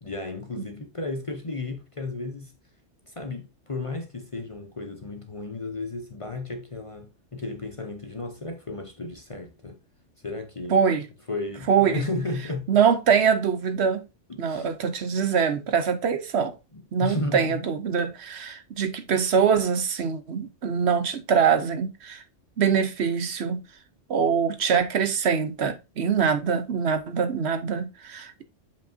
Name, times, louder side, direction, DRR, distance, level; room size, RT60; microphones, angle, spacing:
voice 1, 0.0-2.5 3.1-9.8 10.2-10.8 11.3-12.7 14.3-14.7 16.7-17.6, left 2 dB, 30° left, 0.7 m, -34 dB
voice 2, 10.7-11.0 11.7-12.0 12.7-14.0 14.4-16.5 16.9-22.2 22.6-23.6 24.1-28.4, right 6 dB, 65° right, 1.0 m, -23 dB
7.4 x 5.2 x 2.6 m
omnidirectional pair, 1.3 m